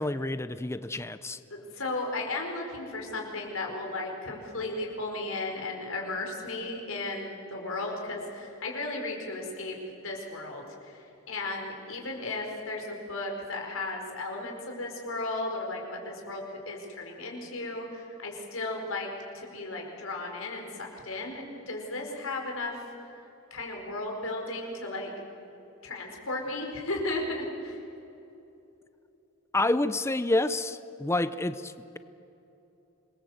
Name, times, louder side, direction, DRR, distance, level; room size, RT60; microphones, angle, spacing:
voice 1, 0.0-1.4 29.5-32.0, left 2 dB, 15° left, 13 dB, 0.6 m, -28 dB
voice 2, 1.5-19.1 19.3-22.8 23.5-25.1 25.8-27.8, left 2 dB, 90° left, 1 dB, 4.8 m, -35 dB
26.5 x 21.0 x 7.9 m, 2.9 s
head